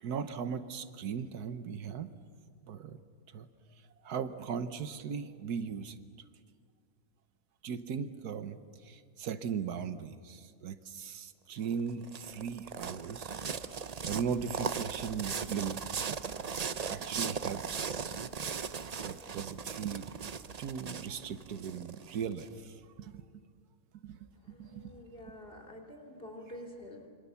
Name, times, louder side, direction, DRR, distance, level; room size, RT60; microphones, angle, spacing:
voice 1, 0.0-2.1 2.6-3.0 3.3-3.5 4.0-6.0 7.6-13.4 13.8-16.3 16.9-18.2 19.0-20.1 20.6-23.2 24.0-24.9, right 7 dB, 85° right, 11 dB, 1.5 m, -38 dB
sound 1, 11.6-22.4, right 6 dB, 50° right, 0.4 m, -38 dB
voice 2, 24.4-27.1, left 1 dB, 35° left, 1 dB, 3.5 m, -48 dB
26.5 x 25.0 x 7.0 m, 2.1 s
omnidirectional pair, 1.6 m